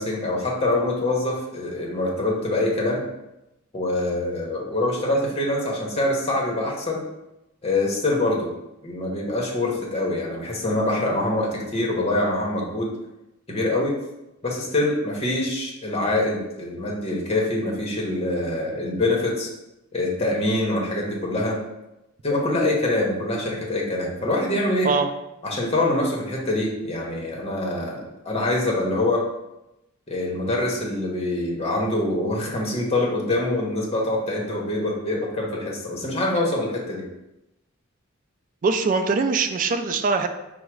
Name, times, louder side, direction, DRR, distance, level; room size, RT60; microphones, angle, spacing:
voice 1, 0.0-3.1 3.7-7.0 7.6-8.5 8.8-12.9 13.5-13.9 14.4-19.5 19.9-21.6 22.2-24.9 25.4-29.2 30.1-37.0, left 2 dB, 30° left, -2 dB, 0.9 m, -24 dB
voice 2, 38.6-40.3, right 4 dB, 40° right, 7 dB, 0.3 m, -22 dB
4.6 x 2.1 x 4.6 m, 0.92 s
head